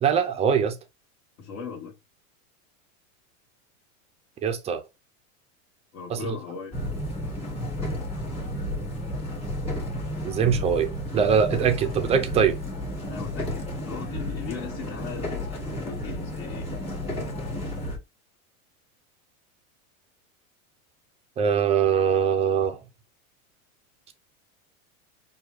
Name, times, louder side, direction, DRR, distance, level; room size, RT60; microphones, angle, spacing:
voice 1, 0.0-0.8 4.4-4.8 6.1-6.4 10.2-12.6 21.4-22.8, right 7 dB, 15° right, 0.4 m, -22 dB
voice 2, 1.4-2.0 5.9-6.8 13.1-16.7, left 6 dB, 65° left, 1.5 m, -38 dB
sound 1, 6.7-18.0, equal, 15° left, 1.4 m, -32 dB
4.8 x 2.3 x 3.0 m
supercardioid pair, 130°, 41 cm